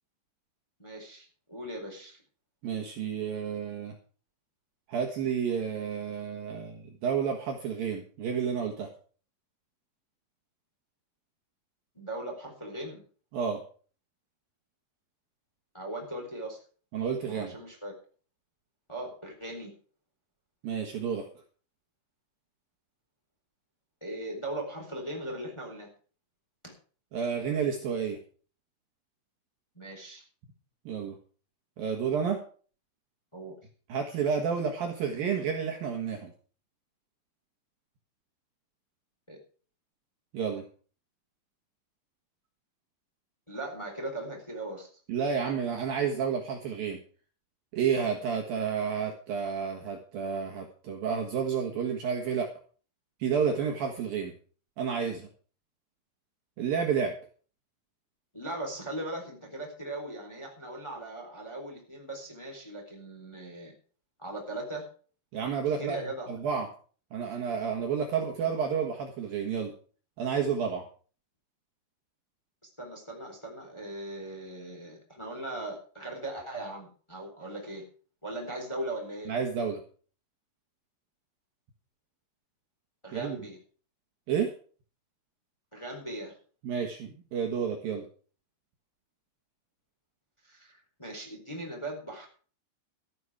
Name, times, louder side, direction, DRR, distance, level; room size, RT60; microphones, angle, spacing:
voice 1, 0.8-2.2 11.9-13.0 15.7-16.6 17.2-17.9 18.9-19.7 24.0-25.9 26.6-26.7 29.7-30.2 33.3-33.5 39.3-39.4 43.5-44.9 58.3-63.7 64.2-64.9 65.8-66.3 72.8-77.8 78.2-79.3 83.0-83.6 85.7-86.3 90.5-92.3, right 1 dB, 5° left, 0 dB, 3.3 m, -39 dB
voice 2, 2.6-3.9 4.9-8.9 13.3-13.6 16.9-17.6 20.6-21.3 27.1-28.2 30.9-31.1 31.8-32.4 33.9-36.3 40.3-40.6 45.1-47.0 47.7-52.5 53.2-54.3 54.8-55.3 56.6-57.1 65.3-66.0 66.3-66.7 67.1-69.7 70.2-70.8 79.3-79.8 83.1-83.4 84.3-84.5 86.6-88.1, right 7 dB, 60° right, 2 dB, 2.9 m, -30 dB
13.5 x 11.0 x 4.9 m, 0.41 s
omnidirectional pair, 5.3 m